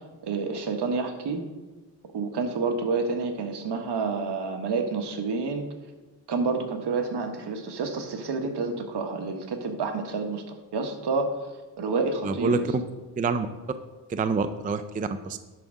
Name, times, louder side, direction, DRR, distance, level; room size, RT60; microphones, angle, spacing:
voice 1, 0.2-1.4 2.1-5.7 6.3-11.3 11.8-12.7, right 4 dB, 70° right, 5 dB, 1.2 m, -29 dB
voice 2, 12.2-12.8 13.2-13.5 14.1-15.4, right 4 dB, 20° right, 10 dB, 0.3 m, -26 dB
10.5 x 3.6 x 6.1 m, 1.2 s
wide cardioid pair, 125°, 42 cm